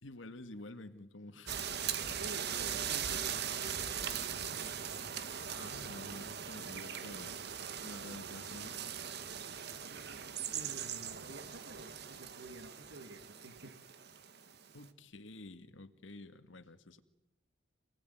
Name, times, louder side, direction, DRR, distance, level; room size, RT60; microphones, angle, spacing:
voice 1, 0.0-1.7 5.5-7.4 7.8-9.0 14.7-17.0, left 2 dB, 75° left, 10 dB, 1.9 m, -50 dB
sound 1, 1.5-14.9, right 8 dB, 55° right, 1.6 m, -40 dB
voice 2, 2.0-4.6 9.9-13.8, right 2 dB, 80° right, 9 dB, 2.6 m, -51 dB
28.0 x 19.0 x 9.4 m, 0.94 s
head